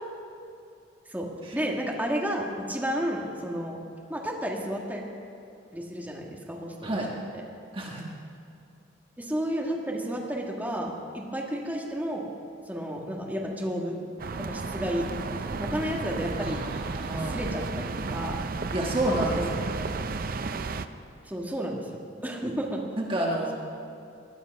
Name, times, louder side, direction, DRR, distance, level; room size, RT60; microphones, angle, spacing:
voice 1, 1.1-3.8 4.1-5.0 5.7-7.0 9.2-12.2 12.7-14.0 14.5-16.6 17.1-18.4 19.4-19.6 21.2-22.8, equal, 10° right, -2 dB, 1.6 m, -32 dB
voice 2, 7.7-8.1 16.4-17.4 18.7-19.4 19.7-19.9 23.0-23.5, right 1 dB, 30° right, -1 dB, 1.4 m, -29 dB
sound 1, 14.2-20.9, right 3 dB, 50° right, 0.5 m, -33 dB
20.0 x 11.5 x 5.3 m, 2.6 s
head